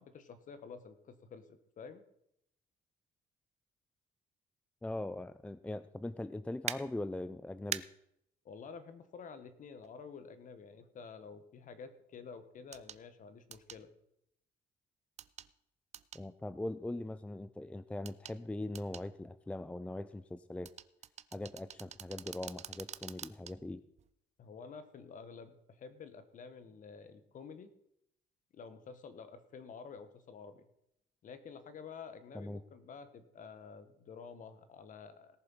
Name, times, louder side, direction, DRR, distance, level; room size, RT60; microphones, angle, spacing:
voice 1, 0.0-1.4 1.8-2.0 8.4-13.9 24.4-27.7 28.5-30.7 31.2-35.4, left 5 dB, 50° left, 11 dB, 1.6 m, -50 dB
voice 2, 4.8-7.8 16.1-20.7 21.3-23.8 32.3-32.6, left 1 dB, 5° left, 14 dB, 0.5 m, -41 dB
sound 1, 6.7-6.8 7.7-7.8 9.8-9.9 12.7-13.0 13.5-13.8 15.2-15.5 15.9-16.2 18.0-18.4 18.7-19.1 20.6-23.5 24.0-24.1, right 9 dB, 40° right, 0.6 m, -43 dB
18.0 x 6.9 x 5.6 m, 0.75 s
cardioid pair, 110°, 17 cm